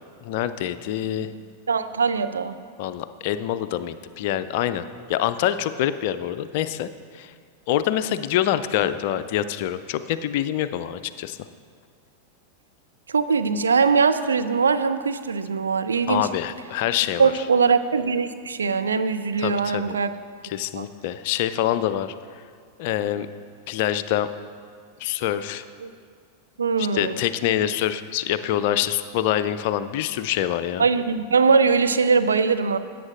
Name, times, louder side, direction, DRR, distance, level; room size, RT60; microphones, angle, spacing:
voice 1, 0.2-1.3 2.8-6.9 7.1-7.3 7.7-11.4 16.1-17.4 19.4-20.0 20.4-22.1 22.8-23.3 23.7-24.3 25.0-25.6 26.8-30.9, left 11 dB, 50° left, 12 dB, 0.4 m, -25 dB
voice 2, 1.7-2.6 13.1-16.3 17.2-20.1 20.8-20.9 25.8-25.9 26.6-27.2 30.8-32.8, right 5 dB, 70° right, 10 dB, 0.4 m, -21 dB
17.0 x 8.3 x 2.5 m, 2.1 s
figure-of-eight pair, 90°, 0 cm